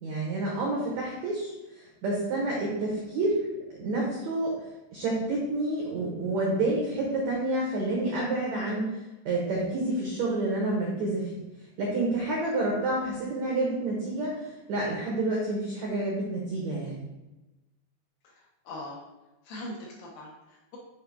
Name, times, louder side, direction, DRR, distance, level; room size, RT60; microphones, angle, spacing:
voice 1, 0.0-3.5 3.7-4.6 4.9-8.8 9.2-11.3 11.8-17.0, right 2 dB, 80° right, -3 dB, 1.6 m, -29 dB
voice 2, 18.2-19.0 19.5-20.8, left 1 dB, 75° left, -2 dB, 2.3 m, -41 dB
6.8 x 4.9 x 3.5 m, 1.0 s
omnidirectional pair, 4.8 m